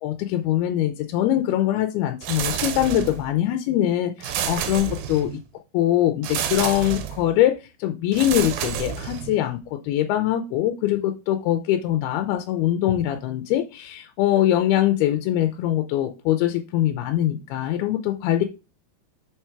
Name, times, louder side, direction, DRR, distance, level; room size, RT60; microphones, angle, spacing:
voice 1, 0.0-5.4 5.7-7.6 7.8-18.4, left 12 dB, 85° left, 6 dB, 2.6 m, -23 dB
sound 1, 2.2-3.3 4.2-5.4 6.2-7.3 8.1-9.4, right 9 dB, 85° right, 2.6 m, -29 dB
6.3 x 4.6 x 4.4 m, 0.29 s
omnidirectional pair, 4.4 m